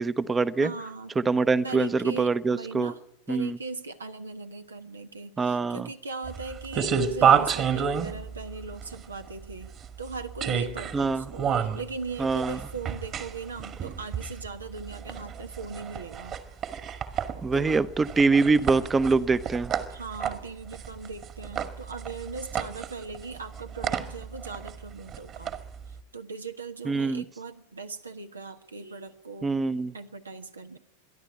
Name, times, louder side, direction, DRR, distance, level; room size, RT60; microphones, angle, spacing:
voice 1, 0.0-0.7 1.2-2.9 3.3-3.6 5.4-5.9 10.9-11.2 12.2-12.6 17.4-19.7 26.9-27.2 29.4-29.9, right 4 dB, 15° right, 17 dB, 0.9 m, -24 dB
voice 2, 0.6-1.1 1.6-3.0 3.3-9.7 10.0-16.4 17.5-17.8 19.9-25.6 25.9-29.5 29.9-30.8, right 4 dB, 75° right, 8 dB, 1.1 m, -39 dB
sound 1, 6.2-26.0, right 7 dB, 30° right, 1.9 m, -30 dB
27.0 x 11.5 x 9.9 m, 0.80 s
figure-of-eight pair, 90°, 0 cm